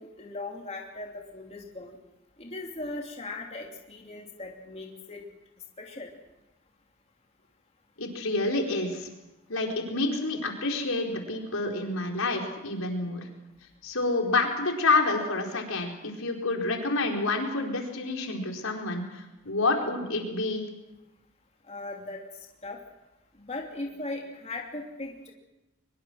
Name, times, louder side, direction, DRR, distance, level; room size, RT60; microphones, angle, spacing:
voice 1, 0.0-2.0 2.4-5.2 5.8-6.1 21.7-22.2 22.6-22.8 23.5-25.3, left 2 dB, 30° left, 0 dB, 2.9 m, -38 dB
voice 2, 8.0-9.1 9.5-13.2 13.8-15.9 16.2-20.6, left 3 dB, 80° left, 1 dB, 4.6 m, -28 dB
23.5 x 23.0 x 6.4 m, 0.98 s
head